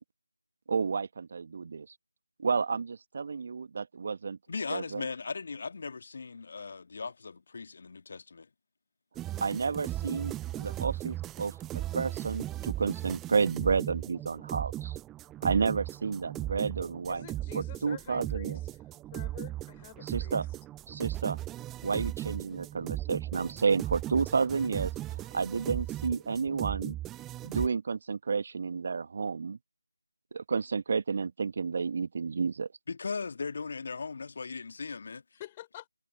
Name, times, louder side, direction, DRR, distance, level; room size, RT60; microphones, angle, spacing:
voice 1, 0.7-1.9 2.4-4.4 4.7-5.0 9.4-14.9 15.4-17.3 17.5-18.6 20.0-20.5 20.9-21.4 21.8-27.0 27.4-29.6 30.3-32.7, right 5 dB, 35° right, 1.7 m, -31 dB
voice 2, 4.5-8.5 32.9-35.4, left 4 dB, 40° left, 2.0 m, -38 dB
sound 1, 9.2-27.7, right 14 dB, 5° right, 0.4 m, -37 dB
voice 3, 17.1-18.8 19.1-20.4 35.4-35.9, left 14 dB, 15° left, 5.7 m, -47 dB
figure-of-eight pair, 160°, 0 cm